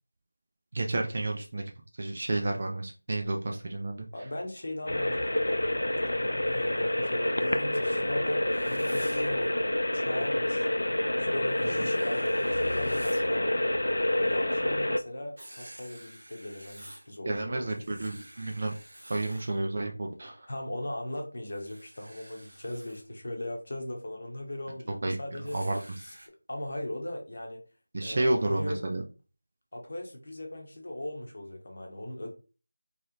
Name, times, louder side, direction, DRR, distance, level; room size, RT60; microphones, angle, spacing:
voice 1, 0.7-1.6 2.0-4.1 11.8-11.9 17.3-18.8 19.1-20.5 25.0-25.8 27.9-29.0, right 2 dB, 25° right, 2 dB, 0.4 m, -31 dB
voice 2, 4.1-5.8 6.4-9.5 9.9-10.7 11.2-13.5 14.2-18.0 20.5-25.6 26.0-26.1 26.5-27.6 28.0-28.8 29.7-32.3, left 1 dB, 40° left, 2 dB, 0.9 m, -39 dB
sound 1, 4.9-15.0, left 1 dB, 90° left, 0.4 m, -28 dB
Writing, 8.5-9.3 11.5-13.3 15.4-17.1 17.7-19.6 21.5-23.0 25.4-26.3, right 1 dB, 80° right, 1.0 m, -50 dB
3.2 x 2.9 x 3.8 m, 0.35 s
figure-of-eight pair, 180°, 0 cm